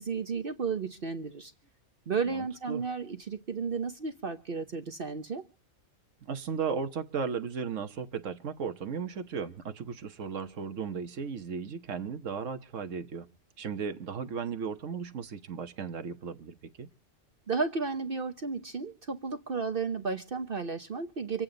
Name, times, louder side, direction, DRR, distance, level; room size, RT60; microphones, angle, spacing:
voice 1, 0.0-1.5 2.1-5.5 17.5-21.4, right 5 dB, 50° right, 1.1 m, -33 dB
voice 2, 2.3-2.8 6.2-13.3 13.6-16.9, right 6 dB, 80° right, 1.4 m, -36 dB
26.5 x 8.9 x 3.9 m
omnidirectional pair, 1.3 m